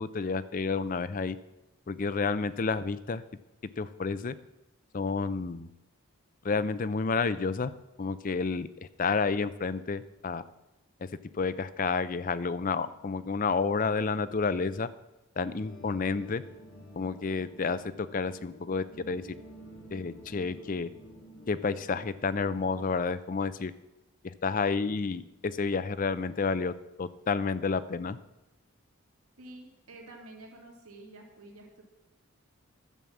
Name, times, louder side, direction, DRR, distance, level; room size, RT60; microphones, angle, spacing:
voice 1, 0.0-1.4 1.9-3.2 3.8-4.4 4.9-5.7 6.4-7.7 8.0-8.7 9.0-10.4 11.0-11.1 11.3-14.9 15.4-16.4 17.0-19.2 19.9-20.9 21.5-23.7 24.4-28.2, left 4 dB, 40° left, 15 dB, 0.4 m, -30 dB
sound 1, 15.4-23.0, equal, 70° left, 3.7 m, -50 dB
voice 2, 29.4-31.8, right 2 dB, 90° right, 0 dB, 2.5 m, -49 dB
11.0 x 7.3 x 7.1 m, 0.97 s
head